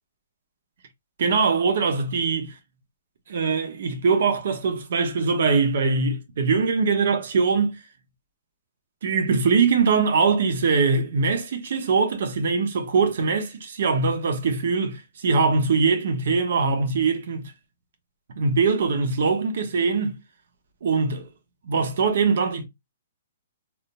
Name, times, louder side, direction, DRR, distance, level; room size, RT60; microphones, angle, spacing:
voice 1, 1.2-2.5 3.3-7.8 9.0-17.5 18.4-20.2 20.8-21.3 21.6-22.6, right 4 dB, 65° right, 1.0 m, -22 dB
3.5 x 2.8 x 2.2 m
hypercardioid pair, 150°, 0 cm